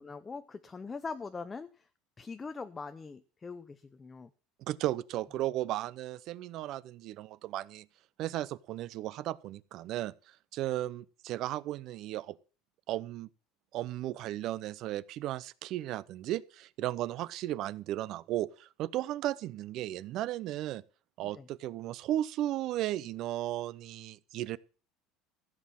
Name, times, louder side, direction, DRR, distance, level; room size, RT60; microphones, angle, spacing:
voice 1, 0.0-1.7 2.2-4.3 21.3-21.5, left 4 dB, 15° left, 0.6 m, -42 dB
voice 2, 4.7-7.9 8.2-10.1 10.5-12.4 12.9-13.3 13.7-20.8 21.2-24.6, right 14 dB, 45° right, 0.6 m, -35 dB
15.0 x 7.5 x 7.4 m
cardioid pair, 165°, 0 cm